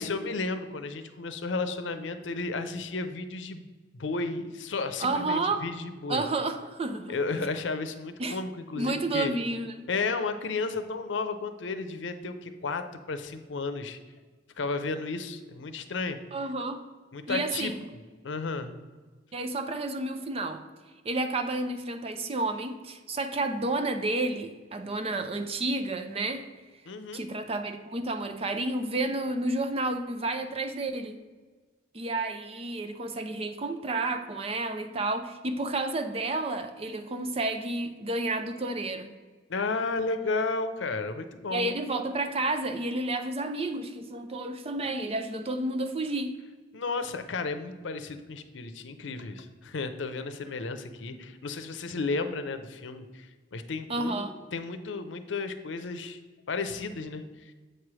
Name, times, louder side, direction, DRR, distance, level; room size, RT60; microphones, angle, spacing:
voice 1, 0.0-3.7 4.0-6.2 7.1-9.3 9.9-14.0 14.6-16.2 17.1-17.7 18.2-18.7 26.9-27.2 39.5-41.8 46.7-56.2 56.5-57.5, left 3 dB, 90° left, 9 dB, 0.6 m, -33 dB
voice 2, 5.0-5.6 6.1-7.2 8.2-8.4 8.7-9.9 16.3-16.8 17.3-17.8 19.3-20.6 21.0-26.5 27.1-31.2 31.9-39.1 41.5-46.4 53.9-54.3, right 2 dB, 30° right, 8 dB, 0.5 m, -31 dB
7.9 x 3.2 x 6.0 m, 1.4 s
head